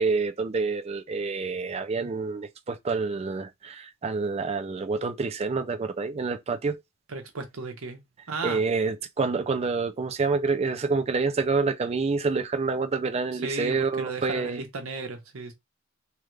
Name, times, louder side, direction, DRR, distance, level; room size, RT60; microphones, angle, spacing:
voice 1, 0.0-6.8 8.4-14.6, right 4 dB, 30° right, 0.4 m, -27 dB
voice 2, 7.1-8.0 8.3-8.6 13.3-15.5, right 4 dB, 85° right, 1.0 m, -35 dB
3.4 x 2.4 x 3.2 m
head